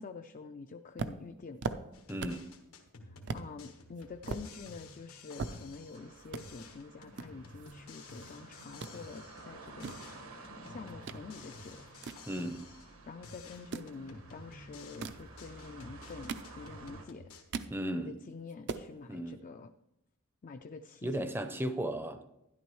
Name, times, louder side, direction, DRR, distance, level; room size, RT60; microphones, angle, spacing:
voice 1, 0.0-1.6 3.0-10.0 10.6-11.8 13.1-17.3 18.0-19.7 20.4-21.3, left 4 dB, 40° left, 7 dB, 0.4 m, -47 dB
sound 1, 1.0-2.5 2.9-3.0 3.3-3.5 4.0-6.0 6.3-6.4 7.2-8.3 8.6-9.0 9.5-11.2 11.6-12.9 13.5-13.9 14.8-15.3 15.9-16.9 17.2-17.8 18.2-18.3 18.5-18.9, right 4 dB, 55° right, 0.5 m, -40 dB
sound 2, 1.9-6.1 6.4-9.5 9.8-13.0 13.2-17.4, left 3 dB, 90° left, 1.4 m, -52 dB
voice 2, 2.1-2.5 12.3-12.6 17.7-18.1 19.1-19.4 21.0-22.2, right 1 dB, 10° right, 9 dB, 0.6 m, -35 dB
sound 3, 5.9-17.1, right 2 dB, 75° right, 1.4 m, -52 dB
12.0 x 11.0 x 3.1 m, 0.89 s
head